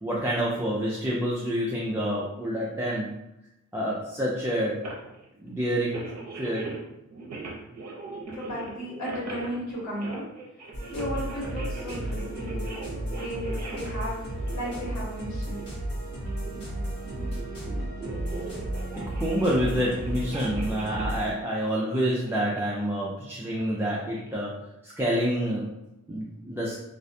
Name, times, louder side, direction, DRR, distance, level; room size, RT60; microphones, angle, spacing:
voice 1, 0.0-3.2 3.7-4.9 5.4-6.0 6.4-6.7 19.2-25.7 26.1-26.8, equal, 10° right, -7 dB, 0.3 m, -28 dB
sound 1, 4.8-5.3 5.9-6.8 7.1-15.8 16.3-22.8 23.6-24.3, right 3 dB, 60° right, 0.6 m, -41 dB
voice 2, 8.3-10.2 10.9-12.6 13.2-14.2 14.5-15.7, equal, 75° left, -6 dB, 1.2 m, -34 dB
sound 2, 10.7-21.3, right 1 dB, 45° left, 1.3 m, -33 dB
2.5 x 2.1 x 2.6 m, 0.88 s
wide cardioid pair, 120°, 30 cm